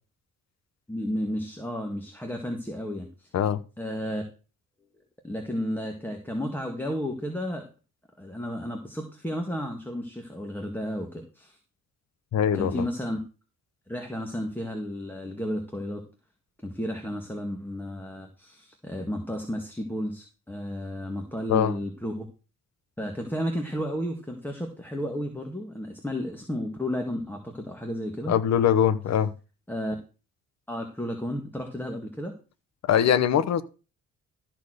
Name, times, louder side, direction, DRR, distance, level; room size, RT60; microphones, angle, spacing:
voice 1, 0.9-3.3 3.8-4.2 5.2-7.7 8.2-11.6 12.6-13.2 13.9-16.0 16.6-22.2 23.0-28.3 29.7-30.0 30.7-32.4, equal, 5° left, 2.0 m, -32 dB
voice 2, 12.3-12.8 21.5-21.7 28.3-29.3 32.9-33.6, left 9 dB, 60° left, 1.0 m, -22 dB
13.5 x 4.6 x 6.5 m
cardioid pair, 90°, 30 cm